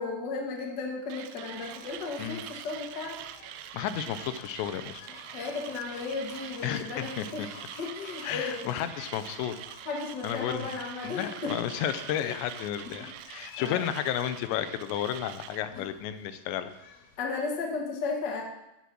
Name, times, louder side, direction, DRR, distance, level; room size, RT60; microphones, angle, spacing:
voice 1, 0.0-3.2 5.3-7.5 7.8-8.6 9.8-11.5 12.2-12.3 13.0-13.1 13.6-13.8 15.7-15.9 17.2-18.4, left 4 dB, 50° left, 0 dB, 1.3 m, -34 dB
Mechanisms, 1.1-15.6, right 11 dB, 80° right, 2.4 m, -44 dB
sound 1, 1.5-17.2, left 5 dB, 75° left, 3.5 m, -52 dB
voice 2, 3.7-5.0 6.6-7.3 8.2-9.6 10.2-10.7 11.0-16.7, left 10 dB, 90° left, 11 dB, 3.0 m, -32 dB
14.5 x 5.4 x 6.3 m, 0.91 s
omnidirectional pair, 4.9 m